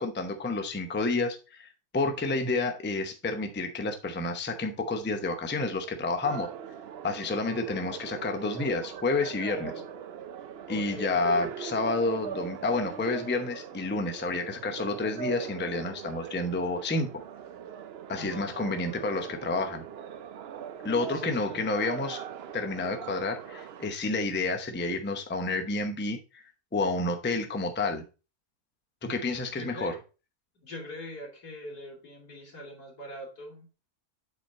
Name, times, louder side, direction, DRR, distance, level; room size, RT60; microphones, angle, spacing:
voice 1, 0.0-6.5 7.0-9.7 10.7-17.1 18.1-19.8 20.8-22.2 22.5-26.4 26.7-28.0 29.0-29.9, left 3 dB, 10° left, 5 dB, 0.5 m, -30 dB
sound 1, 6.2-23.9, right 8 dB, 70° right, 0.6 m, -41 dB
voice 2, 10.7-11.4 18.1-18.5 21.1-21.6 29.5-30.0 30.6-33.7, left 1 dB, 90° left, -1 dB, 3.1 m, -42 dB
7.9 x 4.4 x 4.2 m, 0.32 s
omnidirectional pair, 1.6 m